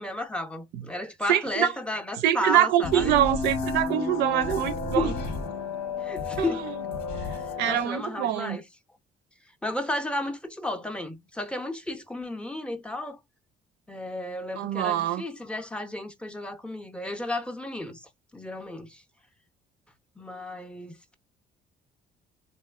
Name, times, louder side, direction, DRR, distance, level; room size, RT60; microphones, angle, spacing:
voice 1, 0.0-3.1 4.9-5.2 6.0-6.7 7.6-8.6 9.6-13.2 13.9-19.0 20.2-21.1, left 1 dB, 5° left, 0.5 m, -33 dB
voice 2, 1.3-1.7 2.2-5.1 6.4-6.7 7.6-8.6 14.6-15.2, right 11 dB, 85° right, 0.5 m, -24 dB
sound 1, 2.8-7.8, left 4 dB, 85° left, 1.0 m, -32 dB
3.0 x 2.5 x 2.3 m
cardioid pair, 110°, 17 cm